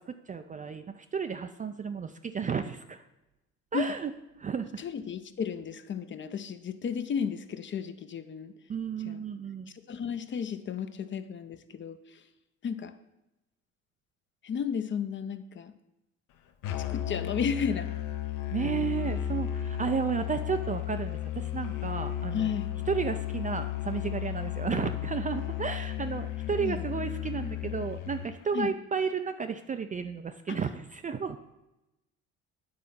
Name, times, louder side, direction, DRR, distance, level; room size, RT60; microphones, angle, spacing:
voice 1, 0.0-3.0 3.7-4.1 4.4-4.8 8.7-9.7 18.5-22.5 22.9-31.4, right 6 dB, 20° right, 8 dB, 0.4 m, -33 dB
voice 2, 4.8-8.5 9.1-9.2 9.9-12.2 12.6-12.9 14.4-15.7 16.8-17.9 22.3-22.7 26.6-26.8 28.5-28.7 30.5-30.6, left 7 dB, 30° left, 11 dB, 0.6 m, -33 dB
Musical instrument, 16.6-28.3, left 12 dB, 55° left, 0.8 m, -34 dB
9.4 x 4.2 x 5.5 m, 0.93 s
hypercardioid pair, 60°, 39 cm